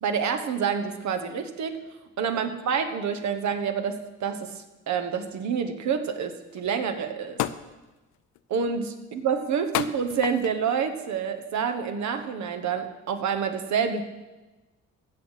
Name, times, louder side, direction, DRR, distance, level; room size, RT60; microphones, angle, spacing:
voice 1, 0.0-1.8 2.2-7.4 8.5-14.0, right 6 dB, 70° right, 7 dB, 1.2 m, -28 dB
sound 1, 6.5-6.6 7.4-7.8 8.4-8.7 9.7-10.6 11.4-11.6, left 13 dB, 80° left, 0.6 m, -30 dB
15.5 x 6.5 x 5.7 m, 1.1 s
cardioid pair, 90°, 30 cm